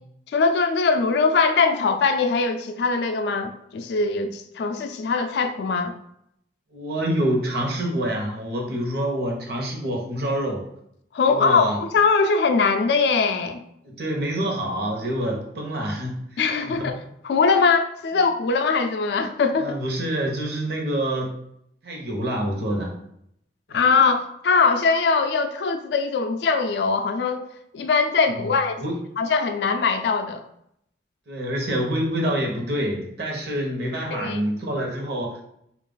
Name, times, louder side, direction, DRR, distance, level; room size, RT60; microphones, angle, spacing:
voice 1, 0.3-5.9 11.1-13.6 16.4-19.7 23.7-27.4 27.7-28.8 29.2-30.5 34.1-34.4, left 4 dB, 65° left, 7 dB, 0.3 m, -21 dB
voice 2, 6.7-10.6 11.3-11.8 13.8-16.9 19.6-21.4 21.8-22.9 23.7-23.8 28.8-28.9 31.3-35.4, right 1 dB, 65° right, 0 dB, 0.9 m, -27 dB
3.8 x 2.4 x 3.8 m, 0.74 s
head